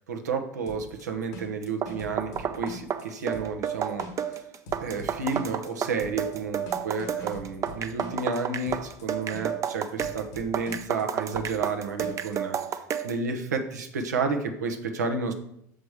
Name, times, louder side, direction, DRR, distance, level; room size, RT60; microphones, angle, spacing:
voice 1, 0.1-4.4 4.8-12.6 13.0-15.3, right 4 dB, 85° right, 5 dB, 0.9 m, -31 dB
sound 1, 0.7-12.4, left 1 dB, 75° left, 1.6 m, -43 dB
sound 2, 1.6-13.2, right 8 dB, 35° right, 0.6 m, -31 dB
6.6 x 5.1 x 4.8 m, 0.74 s
hypercardioid pair, 80°, 9 cm